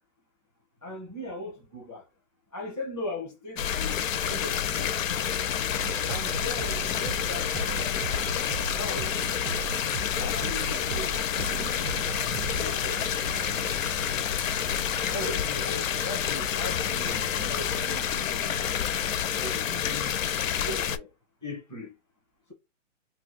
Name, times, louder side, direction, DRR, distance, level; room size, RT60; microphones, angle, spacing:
voice 1, 0.8-2.0 2.5-5.0 6.1-9.6 10.2-13.8 15.1-18.7 19.4-20.2 20.6-21.1 21.4-21.9, left 2 dB, 5° left, 0.4 m, -39 dB
Larger stream with crows in forest, 3.6-21.0, left 9 dB, 75° left, 0.5 m, -29 dB
sound 1, 5.8-18.1, right 10 dB, 85° right, 0.5 m, -40 dB
2.5 x 2.3 x 4.1 m
hypercardioid pair, 160°, 39 cm